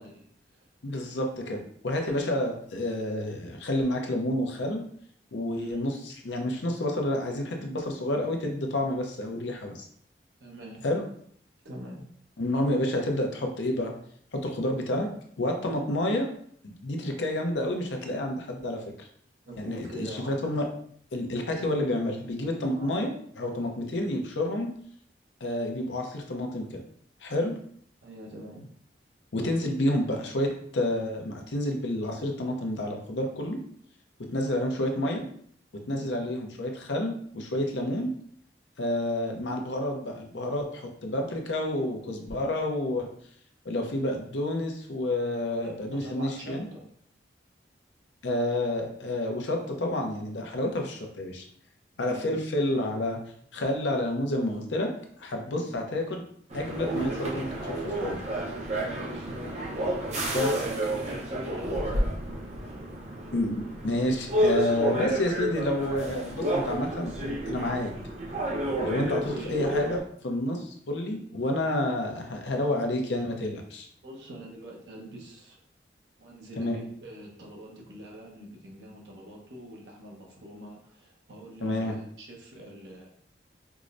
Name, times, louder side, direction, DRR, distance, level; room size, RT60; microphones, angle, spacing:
voice 1, 0.0-0.7 5.5-5.9 10.4-10.8 11.6-12.1 19.5-20.5 22.7-23.0 23.6-23.8 28.0-28.7 34.4-34.6 35.9-36.3 45.5-46.8 52.0-52.3 55.4-55.7 58.8-62.1 69.1-69.6 74.0-75.6 76.2-83.1, right 1 dB, 80° right, -1 dB, 0.9 m, -45 dB
voice 2, 0.8-4.8 5.3-9.9 10.8-11.0 12.4-13.9 14.3-15.1 15.4-16.3 16.6-18.8 19.6-20.7 21.1-24.7 25.4-26.8 27.2-27.5 29.3-33.6 34.2-35.3 35.9-38.1 38.8-43.1 43.6-46.7 48.2-51.4 52.0-53.2 53.5-54.9 55.2-56.2 56.5-58.2 60.3-60.6 63.3-67.9 68.8-73.9 76.6-76.8 81.6-82.0, left 1 dB, 85° left, 2 dB, 0.6 m, -29 dB
sound 1, 56.5-70.0, right 1 dB, 40° right, 0.6 m, -30 dB
4.6 x 2.0 x 2.5 m, 0.62 s
head